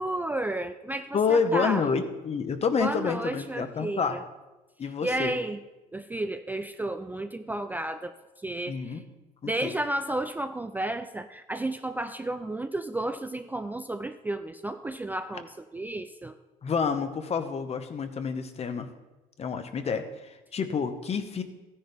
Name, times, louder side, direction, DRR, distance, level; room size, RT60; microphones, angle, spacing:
voice 1, 0.0-1.8 2.8-4.2 5.0-5.6 5.9-8.2 8.4-9.0 9.4-16.3, right 1 dB, 10° right, 7 dB, 0.4 m, -32 dB
voice 2, 1.1-4.2 4.8-5.3 8.7-9.0 9.4-9.7 16.6-18.9 19.4-21.4, left 5 dB, 40° left, 9 dB, 1.0 m, -28 dB
15.0 x 10.0 x 3.5 m, 1.1 s
cardioid pair, 110°, 17 cm